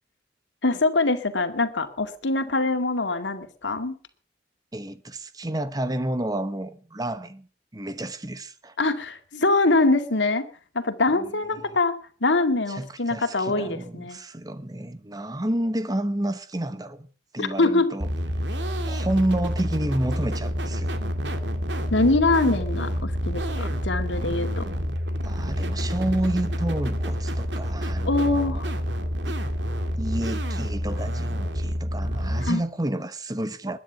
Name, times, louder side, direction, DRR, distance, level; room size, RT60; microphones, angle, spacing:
voice 1, 0.6-3.9 8.8-10.5 10.7-14.2 17.4-17.9 21.9-24.7 28.0-28.7 32.4-32.6, left 2 dB, 90° left, 2.1 m, -23 dB
voice 2, 4.7-7.5 7.7-8.8 11.1-11.3 12.7-17.1 17.3-18.1 18.8-20.9 25.2-28.6 29.2-29.3 30.0-33.8, right 1 dB, 20° right, 1.0 m, -30 dB
sound 1, 18.0-32.5, equal, 80° right, 2.2 m, -28 dB
21.0 x 9.8 x 5.9 m
head